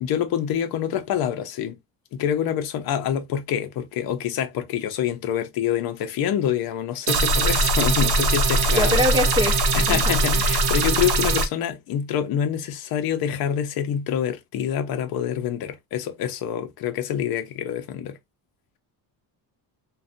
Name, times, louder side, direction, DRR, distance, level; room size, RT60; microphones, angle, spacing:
voice 1, 0.0-1.7 2.1-9.0 9.3-18.2, left 9 dB, 60° left, 0.6 m, -26 dB
sound 1, 7.1-11.5, right 2 dB, 65° right, 0.8 m, -21 dB
voice 2, 8.7-9.6 9.9-10.2, equal, 10° right, 0.7 m, -23 dB
2.6 x 2.2 x 2.5 m
cardioid pair, 155°, 42 cm